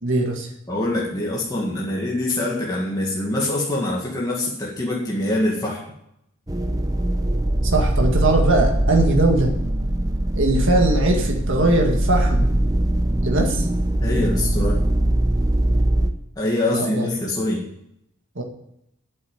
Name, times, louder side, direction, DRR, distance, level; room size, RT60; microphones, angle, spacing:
voice 1, 0.0-0.5 7.6-9.5 10.4-12.5 13.2-13.7 16.7-17.1 18.4-18.5, right 2 dB, 55° right, 0 dB, 2.0 m, -20 dB
voice 2, 0.7-5.8 14.0-14.8 16.4-17.6, left 1 dB, 15° left, -4 dB, 2.0 m, -24 dB
sound 1, 6.5-16.1, right 1 dB, 15° right, 0.7 m, -21 dB
8.8 x 8.2 x 9.1 m, 0.79 s
head